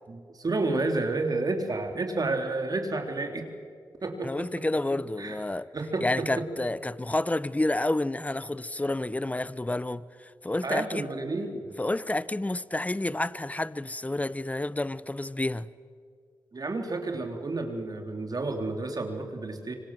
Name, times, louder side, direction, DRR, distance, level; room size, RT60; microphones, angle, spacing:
voice 1, 0.1-3.5 4.0-4.5 5.2-5.4 5.7-6.5 10.6-11.7 16.5-19.7, right 2 dB, 45° right, 3.9 m, -30 dB
voice 2, 4.2-5.7 6.0-11.1 11.8-15.7, left 2 dB, 15° left, 0.9 m, -29 dB
25.5 x 25.0 x 7.7 m
cardioid pair, 55°, 9 cm